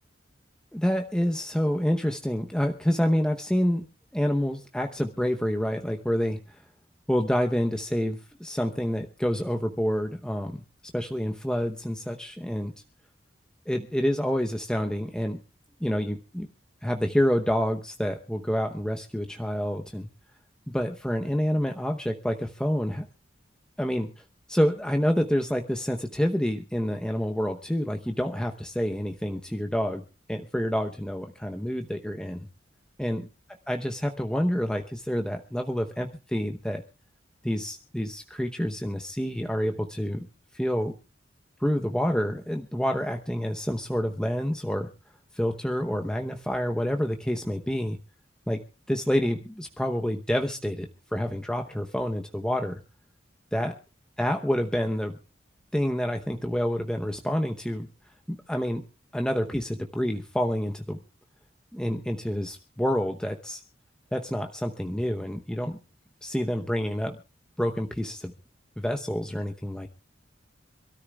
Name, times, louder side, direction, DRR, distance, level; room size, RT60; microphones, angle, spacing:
voice 1, 0.7-3.9 4.1-6.6 7.1-10.6 10.9-12.7 13.7-15.4 15.8-16.5 16.8-20.1 20.7-23.1 23.8-30.0 30.3-32.4 33.0-33.3 33.7-36.8 37.4-40.3 40.5-40.9 41.6-44.9 45.3-48.0 48.5-52.8 53.5-53.8 54.2-55.2 55.7-57.9 58.3-58.8 59.1-61.0 61.7-63.6 64.1-65.8 66.2-67.2 67.6-68.3 68.8-69.9, equal, 5° left, 4 dB, 0.9 m, -28 dB
26.5 x 13.5 x 2.4 m, 0.31 s
head